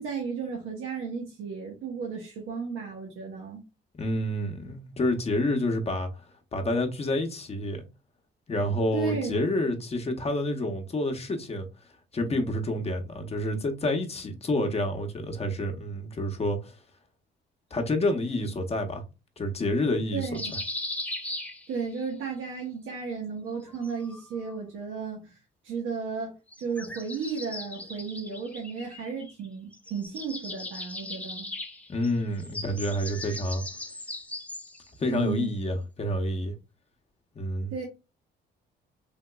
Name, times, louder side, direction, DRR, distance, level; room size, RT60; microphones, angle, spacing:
voice 1, 0.0-3.6 8.9-9.5 20.1-20.4 21.7-25.4 25.6-31.5 35.1-35.6 37.7-37.8, right 5 dB, 85° right, 1.0 m, -34 dB
voice 2, 4.0-6.2 6.5-7.8 8.5-11.7 12.1-16.7 17.7-19.0 19.4-20.6 31.9-33.6 35.0-36.5 37.3-37.7, left 1 dB, 30° left, 0.8 m, -28 dB
sound 1, 20.3-22.1 23.5-24.6 26.5-29.5 29.7-34.9, left 2 dB, 5° left, 0.5 m, -39 dB
3.6 x 2.8 x 2.2 m
cardioid pair, 90°, 20 cm